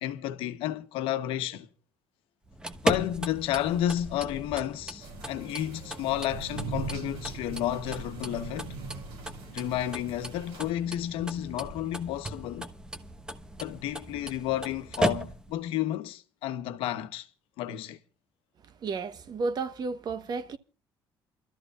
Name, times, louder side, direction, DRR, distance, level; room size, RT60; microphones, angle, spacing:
voice 1, 0.0-1.7 2.8-8.8 9.5-12.7 13.6-17.3 17.6-18.0, left 12 dB, 85° left, 1.0 m, -31 dB
sound 1, 2.4-15.6, right 1 dB, 10° right, 1.1 m, -37 dB
sound 2, 5.0-10.7, right 3 dB, 85° right, 5.7 m, -40 dB
voice 2, 18.8-20.6, right 4 dB, 50° right, 1.2 m, -32 dB
28.0 x 13.5 x 2.4 m
cardioid pair, 105°, 9 cm